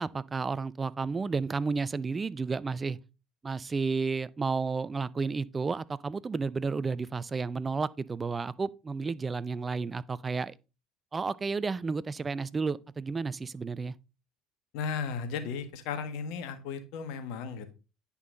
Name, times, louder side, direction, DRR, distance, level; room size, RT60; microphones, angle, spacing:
voice 1, 0.0-3.0 3.4-10.5 11.1-13.9, right 4 dB, 25° right, 0.5 m, -32 dB
voice 2, 14.7-17.7, left 6 dB, 70° left, 1.5 m, -35 dB
9.5 x 5.6 x 3.8 m
hypercardioid pair, 70°, 0 cm